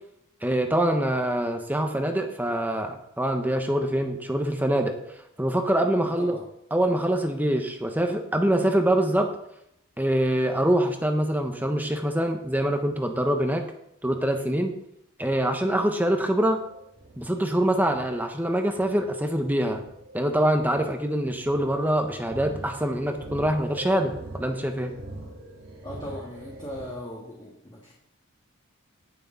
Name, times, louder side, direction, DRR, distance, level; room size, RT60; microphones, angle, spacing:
voice 1, 0.4-5.0 5.4-6.3 6.7-9.3 10.0-13.6 14.0-14.7 15.2-16.6 17.2-19.8 20.1-24.9, right 1 dB, 10° right, 4 dB, 1.2 m, -24 dB
voice 2, 6.0-6.4 25.8-27.9, left 1 dB, 20° left, -4 dB, 1.9 m, -38 dB
sound 1, 16.5-26.9, right 1 dB, 75° right, 2.7 m, -43 dB
18.0 x 6.8 x 4.0 m, 0.77 s
head